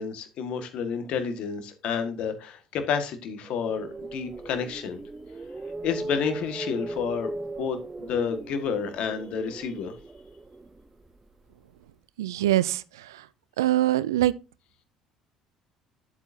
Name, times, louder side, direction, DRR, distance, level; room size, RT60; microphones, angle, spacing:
voice 1, 0.0-5.0 5.8-9.9, left 6 dB, 60° left, 1.7 m, -30 dB
sound 1, 3.5-11.5, right 2 dB, 20° right, 0.7 m, -38 dB
voice 2, 12.2-13.3 13.6-14.3, right 14 dB, 85° right, 0.4 m, -24 dB
9.7 x 8.2 x 2.7 m
hypercardioid pair, 65°, 2 cm